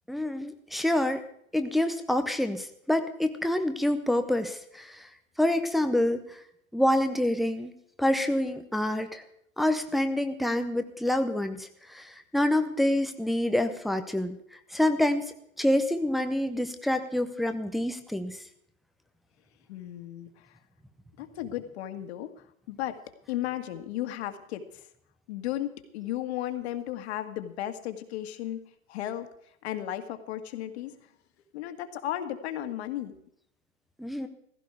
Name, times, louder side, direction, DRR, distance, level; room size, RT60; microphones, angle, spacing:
voice 1, 0.1-1.3 1.5-5.1 5.4-6.2 6.7-7.7 8.0-9.2 9.6-14.4 14.7-15.3 15.6-18.4 34.0-34.3, left 1 dB, ahead, 7 dB, 0.5 m, -27 dB
voice 2, 19.7-20.5 21.2-23.0 23.3-24.8 25.3-28.6 28.9-29.3 29.6-31.0 31.5-33.1, left 12 dB, 50° left, 7 dB, 1.8 m, -35 dB
16.0 x 15.0 x 4.8 m, 0.71 s
hypercardioid pair, 120°, 42 cm